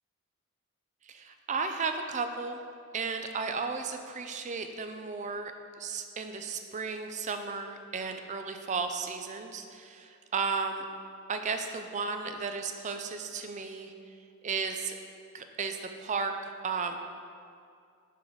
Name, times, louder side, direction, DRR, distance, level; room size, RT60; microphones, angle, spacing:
voice 1, 1.0-2.6 2.9-5.5 5.8-10.9 11.3-13.9 14.4-15.0 15.3-17.0, right 5 dB, 35° right, 7 dB, 0.4 m, -34 dB
7.3 x 3.9 x 6.0 m, 2.4 s
head